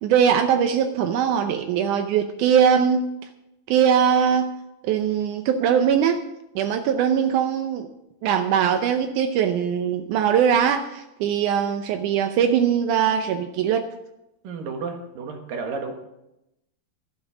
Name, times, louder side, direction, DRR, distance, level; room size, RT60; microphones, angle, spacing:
voice 1, 0.0-3.0 3.7-4.5 4.8-6.2 6.5-7.9 8.2-13.8, right 8 dB, 85° right, 7 dB, 1.7 m, -21 dB
voice 2, 14.4-15.9, right 4 dB, 65° right, 4 dB, 3.1 m, -32 dB
13.0 x 11.5 x 4.9 m, 0.88 s
omnidirectional pair, 4.5 m